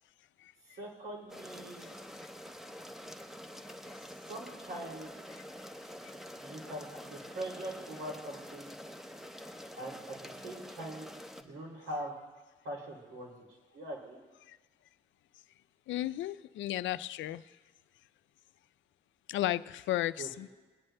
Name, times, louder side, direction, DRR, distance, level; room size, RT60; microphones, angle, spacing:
voice 1, 0.8-1.9 4.3-5.1 6.4-8.7 9.8-11.0 11.4-12.1 12.6-13.3 13.7-14.2 20.2-20.3, right 1 dB, 90° right, -1 dB, 2.8 m, -42 dB
sound 1, 1.3-11.4, equal, ahead, 0.6 m, -47 dB
voice 2, 15.9-17.4 19.3-20.5, left 14 dB, 75° left, 15 dB, 0.4 m, -33 dB
24.5 x 9.8 x 2.2 m, 1.3 s
cardioid pair, 90°, 20 cm